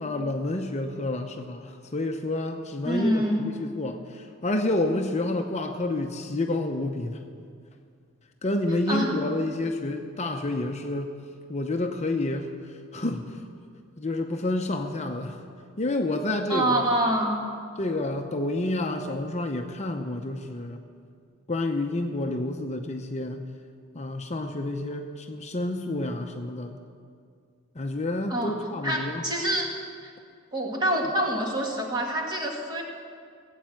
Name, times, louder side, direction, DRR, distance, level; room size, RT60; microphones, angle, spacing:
voice 1, 0.0-7.2 8.4-11.2 11.5-12.5 12.9-13.5 14.0-15.4 15.8-16.8 17.8-20.8 21.5-23.5 23.9-26.8 27.8-29.2, left 2 dB, 35° left, 4 dB, 0.7 m, -29 dB
voice 2, 2.8-3.5 8.9-9.1 16.5-17.4 28.3-28.6 28.8-29.7 30.0-30.1 30.5-32.8, right 1 dB, 20° right, 0 dB, 2.1 m, -26 dB
16.5 x 8.4 x 7.7 m, 2.2 s
head